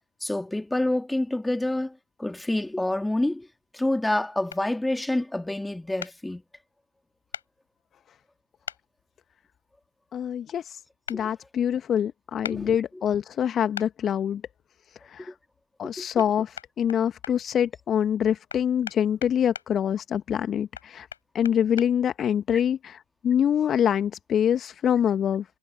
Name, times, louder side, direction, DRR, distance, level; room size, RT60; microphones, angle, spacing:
voice 1, 0.2-3.5 3.7-6.4 11.1-11.3 12.5-13.0 15.8-16.1, left 1 dB, 5° left, 2.1 m, -28 dB
sound 1, 4.5-4.6 6.0-6.1 7.3-7.5 8.6-8.8 11.1-11.2 12.4-12.6 13.7-13.9 16.2-16.3 16.6-17.3 18.5-19.7 20.7-21.9, left 8 dB, 75° left, 3.6 m, -37 dB
voice 2, 10.1-10.8 11.1-14.4 15.1-15.3 15.8-21.1 21.3-25.4, left 9 dB, 30° left, 1.4 m, -25 dB
figure-of-eight pair, 90°, 0 cm